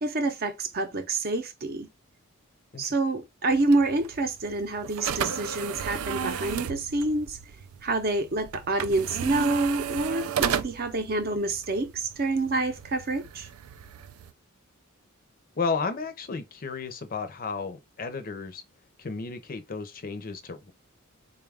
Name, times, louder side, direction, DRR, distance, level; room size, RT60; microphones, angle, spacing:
voice 1, 0.0-1.9 2.8-7.4 7.8-13.5, right 2 dB, 45° right, 0.7 m, -27 dB
sound 1, 3.5-14.3, right 8 dB, 80° right, 0.4 m, -34 dB
voice 2, 15.6-18.6 19.0-20.7, left 4 dB, 40° left, 0.6 m, -33 dB
3.8 x 2.3 x 3.4 m
head